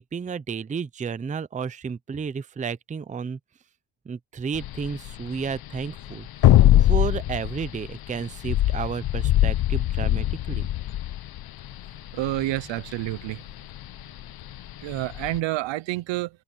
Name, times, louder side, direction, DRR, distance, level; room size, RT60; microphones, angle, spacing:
voice 1, 0.0-3.4 4.1-6.3 6.8-10.7, right 6 dB, 15° right, 0.6 m, -32 dB
sound 1, 4.6-15.4, left 13 dB, 45° left, 0.9 m, -22 dB
voice 2, 12.1-13.4 14.8-16.3, right 17 dB, 65° right, 0.8 m, -28 dB
cardioid pair, 140°, 50 cm